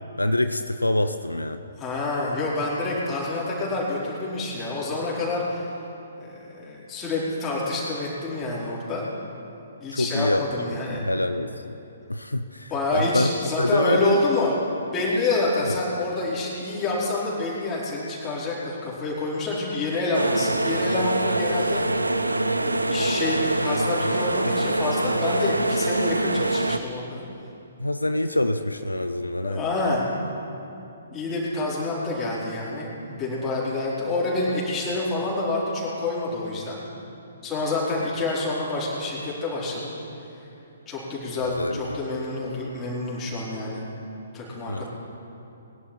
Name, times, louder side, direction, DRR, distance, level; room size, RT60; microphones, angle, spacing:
voice 1, 0.2-1.6 9.9-10.4 10.9-11.8 12.1-14.2 15.7-15.8 27.8-29.7 41.6-42.0 44.7-44.9, left 1 dB, 85° left, 10 dB, 0.6 m, -25 dB
voice 2, 1.8-5.7 6.2-9.1 9.8-11.0 12.7-14.5 14.9-21.8 22.6-27.2 29.4-30.1 31.1-36.8 37.4-39.9 40.9-43.8 44.3-44.9, left 2 dB, 20° left, -7 dB, 4.4 m, -27 dB
sound 1, 20.1-26.8, right 2 dB, 80° right, 0.7 m, -24 dB
22.0 x 11.5 x 4.4 m, 2.9 s
figure-of-eight pair, 125°, 0 cm